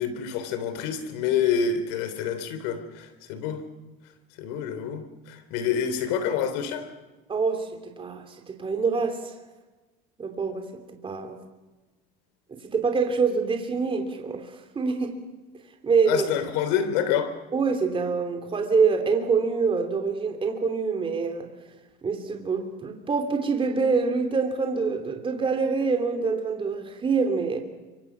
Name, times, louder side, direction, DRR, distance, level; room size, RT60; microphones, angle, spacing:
voice 1, 0.0-3.6 4.4-6.9 16.1-17.3, left 8 dB, 80° left, 11 dB, 3.2 m, -27 dB
voice 2, 7.3-9.3 10.2-11.4 12.5-14.4 14.7-15.1 15.8-16.3 17.5-21.5 22.0-27.6, right 5 dB, 25° right, 4 dB, 3.1 m, -25 dB
27.5 x 24.5 x 6.0 m, 1.2 s
supercardioid pair, 110°, 20 cm